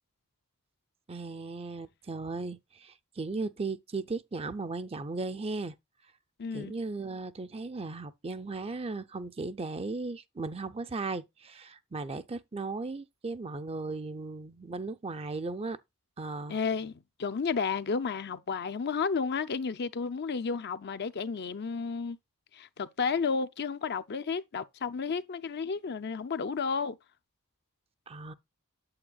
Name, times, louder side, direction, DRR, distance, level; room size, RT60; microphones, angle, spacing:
voice 1, 1.1-5.7 6.5-15.8 16.2-16.6 28.1-28.3, right 3 dB, 25° right, 0.5 m, -36 dB
voice 2, 6.4-6.7 16.5-16.9 17.2-22.2 22.5-27.0, left 5 dB, 50° left, 0.6 m, -32 dB
8.7 x 7.7 x 2.3 m
head